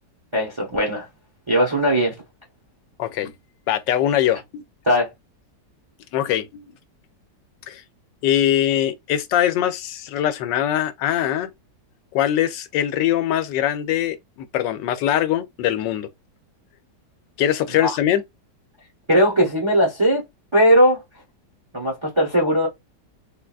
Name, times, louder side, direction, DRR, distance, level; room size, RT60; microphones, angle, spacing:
voice 1, 0.3-1.1 1.5-2.1 4.9-5.1 17.8-18.0 19.1-20.2 20.5-21.0 21.7-22.7, equal, 25° right, 0.6 m, -18 dB
voice 2, 3.0-3.3 3.7-4.6 6.1-6.6 7.7-7.8 8.2-11.5 12.1-16.1 17.4-18.2, left 11 dB, 85° left, 1.2 m, -22 dB
3.8 x 2.2 x 2.4 m
omnidirectional pair, 1.9 m